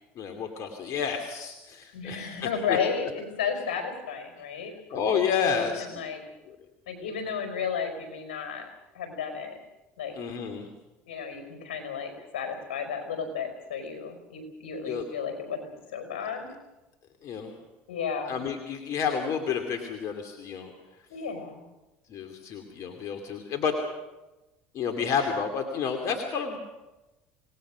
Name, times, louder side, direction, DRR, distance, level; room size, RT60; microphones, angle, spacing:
voice 1, 0.2-2.4 2.7-2.8 4.9-6.0 6.5-6.6 10.1-10.7 14.8-15.0 17.2-17.6 18.3-20.7 22.1-23.8 24.7-26.6, left 6 dB, 55° left, 6 dB, 2.7 m, -30 dB
voice 2, 1.9-4.7 5.4-6.2 6.9-8.7 8.9-9.6 10.0-10.2 11.1-16.5 17.9-18.4 21.1-21.6, left 6 dB, 85° left, 6 dB, 5.2 m, -33 dB
27.5 x 19.0 x 6.3 m, 1.0 s
hypercardioid pair, 75°, 6 cm